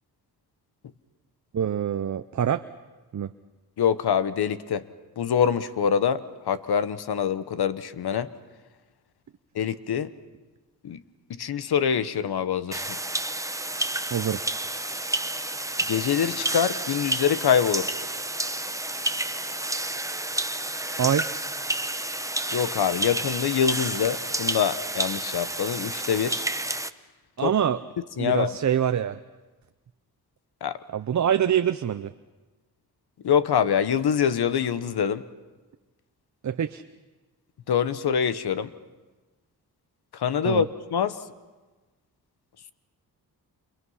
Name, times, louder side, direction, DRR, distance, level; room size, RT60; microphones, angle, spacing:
voice 1, 1.5-2.6 3.1-3.3 14.1-14.4 21.0-21.3 27.4-27.8 28.2-29.2 30.9-32.1 36.4-36.8 40.4-40.6, right 9 dB, 45° right, 10 dB, 0.7 m, -25 dB
voice 2, 3.8-4.9 5.2-8.3 9.5-10.1 10.8-11.0 11.3-13.0 15.9-18.0 22.5-26.5 27.4-27.5 28.2-28.5 30.6-30.8 33.2-35.2 37.7-38.7 40.1-40.7 40.9-41.2, left 8 dB, 75° left, 13 dB, 1.1 m, -25 dB
sound 1, 12.7-26.9, right 1 dB, 10° right, 0.9 m, -30 dB
28.5 x 28.5 x 5.7 m, 1.2 s
cardioid pair, 65°, 39 cm